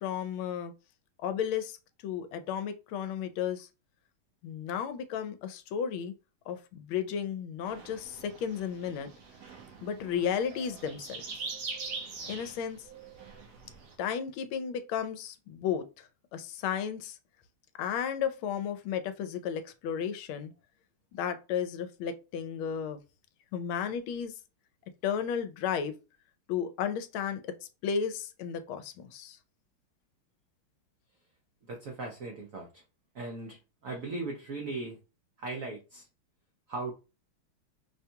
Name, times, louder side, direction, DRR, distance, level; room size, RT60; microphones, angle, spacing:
voice 1, 0.0-0.7 1.2-1.8 2.0-3.7 4.4-6.1 6.5-9.1 9.8-11.4 12.3-12.8 14.0-15.8 16.3-17.2 17.8-20.5 21.2-23.0 23.5-24.3 25.0-25.9 26.5-27.4 27.8-29.4, left 8 dB, 80° left, 1.4 m, -33 dB
sound 1, 7.7-14.0, right 4 dB, 60° right, 1.1 m, -43 dB
voice 2, 31.6-32.8 33.1-35.0 35.4-36.1 36.7-36.9, right 3 dB, 85° right, 0.7 m, -38 dB
5.2 x 2.3 x 2.7 m
omnidirectional pair, 2.3 m